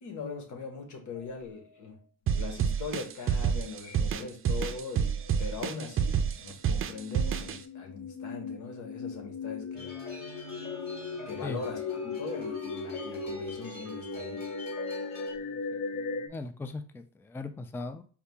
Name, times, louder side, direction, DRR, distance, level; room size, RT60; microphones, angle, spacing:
voice 1, 0.0-2.0 2.3-9.9 11.3-14.4, left 4 dB, 80° left, 3 dB, 1.3 m, -41 dB
sound 1, 1.2-1.7 2.3-2.4 3.8-4.2 4.5-5.4 6.8-16.3, left 4 dB, 60° left, 0.6 m, -38 dB
sound 2, 2.3-7.6, right 7 dB, 45° right, 0.5 m, -28 dB
sound 3, 9.7-15.3, left 2 dB, 30° left, 2.2 m, -45 dB
voice 2, 15.9-18.0, left 3 dB, 10° left, 9 dB, 0.3 m, -39 dB
4.7 x 2.7 x 3.5 m, 0.40 s
cardioid pair, 90°, 30 cm